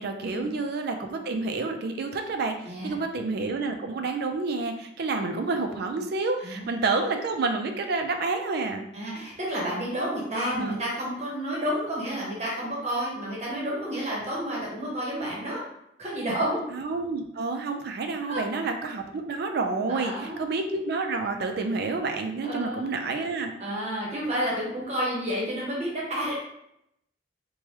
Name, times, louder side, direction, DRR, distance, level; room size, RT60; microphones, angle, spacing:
voice 1, 0.0-8.8 10.6-10.8 16.7-23.5, right 3 dB, 60° right, 5 dB, 0.4 m, -29 dB
voice 2, 2.6-3.0 6.4-6.7 8.9-15.6 16.0-16.6 18.3-18.4 19.9-20.5 22.4-22.8 23.6-26.3, equal, 40° right, -4 dB, 1.1 m, -30 dB
2.9 x 2.2 x 3.1 m, 0.77 s
head